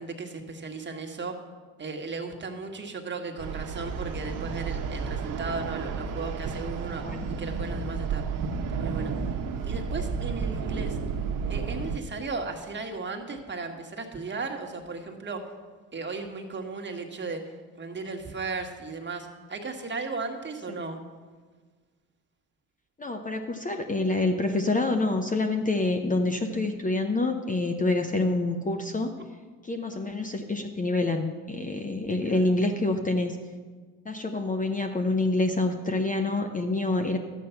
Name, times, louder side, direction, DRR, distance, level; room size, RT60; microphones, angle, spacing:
voice 1, 0.0-1.4 1.8-7.0 7.4-8.2 8.7-9.1 9.6-11.0 11.5-15.5 15.9-21.0 32.3-32.5 36.9-37.2, right 4 dB, 30° right, 3 dB, 1.7 m, -36 dB
sound 1, 3.4-12.0, right 5 dB, 55° right, 1.2 m, -32 dB
voice 2, 6.9-7.3 20.7-20.8 23.0-29.1 29.6-33.4 34.0-37.2, left 2 dB, 20° left, 5 dB, 0.9 m, -27 dB
12.0 x 8.3 x 5.8 m, 1.5 s
supercardioid pair, 85°, 37 cm